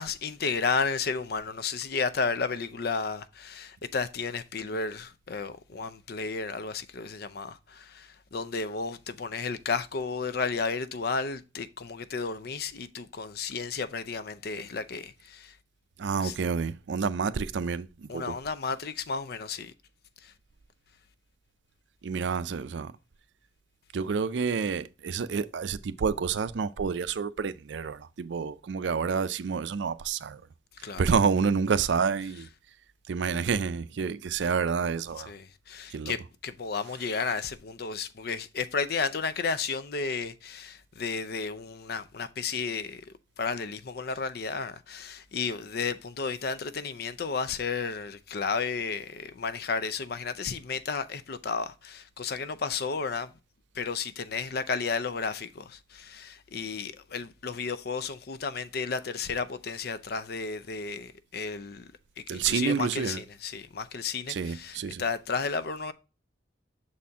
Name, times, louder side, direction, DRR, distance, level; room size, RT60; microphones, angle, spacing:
voice 1, 0.0-15.5 16.2-16.4 18.1-19.7 20.2-20.3 30.8-31.0 35.2-43.0 43.4-53.3 53.8-61.9 62.3-65.9, left 5 dB, 55° left, 0.5 m, -33 dB
voice 2, 16.0-18.3 22.0-22.9 23.9-30.4 31.0-32.5 33.1-35.3 35.9-36.2 62.3-63.2 64.3-65.0, right 5 dB, 75° right, 0.4 m, -29 dB
6.5 x 4.2 x 3.5 m
head